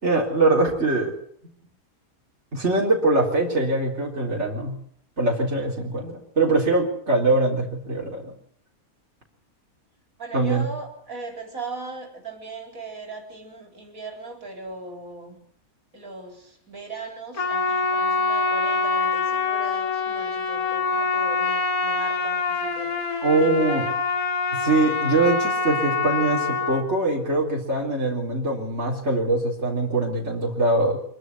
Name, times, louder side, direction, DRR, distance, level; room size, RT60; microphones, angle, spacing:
voice 1, 0.0-1.2 2.5-4.8 5.2-8.3 10.3-10.7 23.2-23.9 24.5-31.0, right 2 dB, 50° right, -2 dB, 4.3 m, -22 dB
voice 2, 10.2-15.4 15.9-22.9 23.4-23.8, right 2 dB, 70° right, 3 dB, 4.7 m, -38 dB
Trumpet, 17.3-26.8, left 4 dB, 85° left, 3.0 m, -25 dB
25.5 x 13.0 x 9.6 m, 0.63 s
omnidirectional pair, 1.5 m